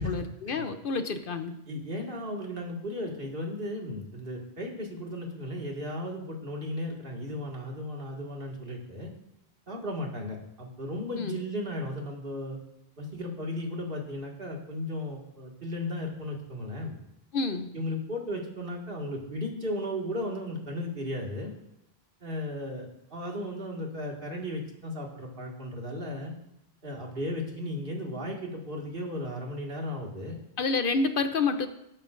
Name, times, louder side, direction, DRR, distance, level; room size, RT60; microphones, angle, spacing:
voice 1, 0.0-1.6 11.2-11.4 17.3-17.7 30.6-31.7, left 4 dB, 60° left, 9 dB, 0.8 m, -29 dB
voice 2, 1.7-9.1 9.7-12.6 13.0-17.0 17.7-21.5 22.2-26.3 26.8-30.4, left 1 dB, 60° right, -1 dB, 2.2 m, -35 dB
19.0 x 8.7 x 2.6 m, 0.81 s
omnidirectional pair, 1.1 m